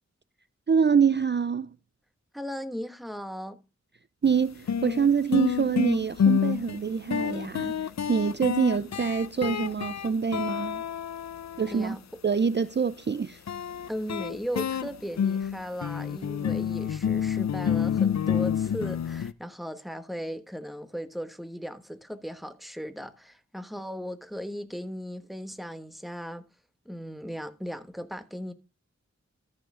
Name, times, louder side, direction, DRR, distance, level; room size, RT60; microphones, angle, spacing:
voice 1, 0.7-1.7 4.2-7.8 8.1-10.8 11.6-12.0 12.2-13.4, right 6 dB, 40° right, 0.4 m, -25 dB
voice 2, 2.3-3.6 11.7-12.0 13.9-26.5 26.8-28.5, equal, ahead, 1.2 m, -37 dB
sound 1, 4.2-4.3 4.7-11.9 13.5-19.3, left 8 dB, 70° left, 0.5 m, -28 dB
13.5 x 6.3 x 3.7 m
wide cardioid pair, 40°, 29 cm